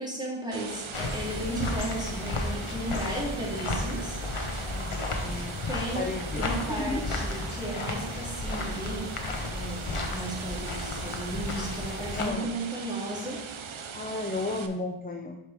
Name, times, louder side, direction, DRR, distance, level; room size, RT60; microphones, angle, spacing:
voice 1, 0.0-4.2 5.7-6.1 6.4-9.2 9.5-13.4, right 1 dB, 10° right, -4 dB, 2.1 m, -35 dB
sound 1, 0.5-14.7, right 6 dB, 70° right, 0.6 m, -41 dB
sound 2, 0.9-12.3, left 2 dB, 80° left, 1.0 m, -33 dB
voice 2, 2.8-3.2 4.7-5.5 5.9-6.4 6.8-7.0 12.2-12.5 13.9-15.4, left 2 dB, 20° left, 3 dB, 0.5 m, -34 dB
6.0 x 5.0 x 4.5 m, 0.93 s
wide cardioid pair, 50°, 50 cm